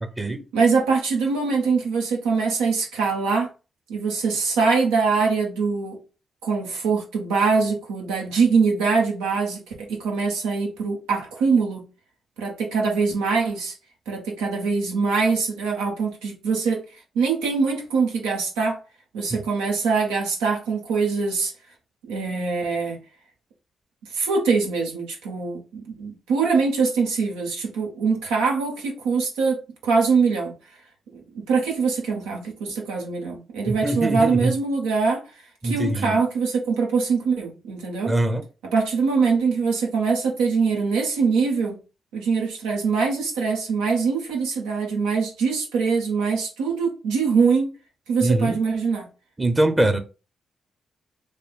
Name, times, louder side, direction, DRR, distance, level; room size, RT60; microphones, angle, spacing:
voice 1, 0.0-0.4 19.3-19.4 33.7-34.5 35.6-36.2 38.1-38.4 48.2-48.6 49.4-50.0, right 2 dB, 20° right, 0.8 m, -23 dB
voice 2, 0.5-3.5 3.9-6.0 6.4-11.8 12.4-13.7 14.1-16.8 17.1-18.8 19.1-21.5 22.0-23.0 24.1-30.5 31.1-35.2 35.6-38.1 38.7-41.8 42.1-47.7 48.1-49.1, right 5 dB, 85° right, 1.0 m, -23 dB
3.3 x 2.2 x 4.3 m
hypercardioid pair, 40°, 0 cm